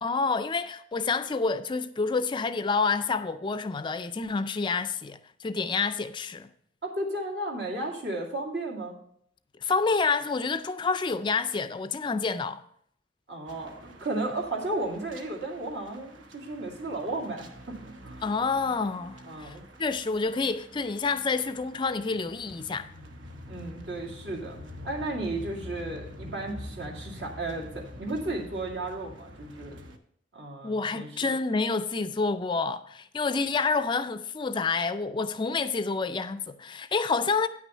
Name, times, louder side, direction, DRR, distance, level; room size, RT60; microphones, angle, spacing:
voice 1, 0.0-6.5 9.6-12.6 18.2-22.9 30.6-37.5, left 4 dB, 25° left, 0.4 m, -28 dB
voice 2, 6.8-9.0 13.3-18.2 19.2-19.6 23.5-24.6 24.8-29.8 30.3-31.3, right 2 dB, 65° right, 2.3 m, -34 dB
sound 1, 13.5-30.0, equal, 90° right, 1.0 m, -46 dB
9.5 x 6.1 x 5.6 m
head